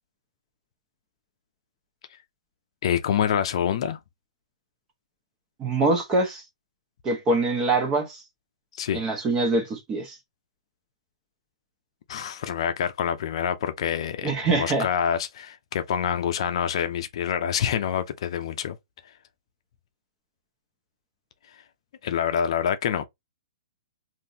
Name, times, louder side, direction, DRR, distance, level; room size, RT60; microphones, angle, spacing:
voice 1, 2.8-4.0 8.7-9.0 12.1-18.8 22.0-23.0, left 9 dB, 55° left, 0.5 m, -26 dB
voice 2, 5.6-6.4 7.0-8.2 8.9-10.2 14.2-14.9, right 2 dB, 20° right, 1.1 m, -24 dB
3.6 x 2.6 x 2.8 m
hypercardioid pair, 150°, 3 cm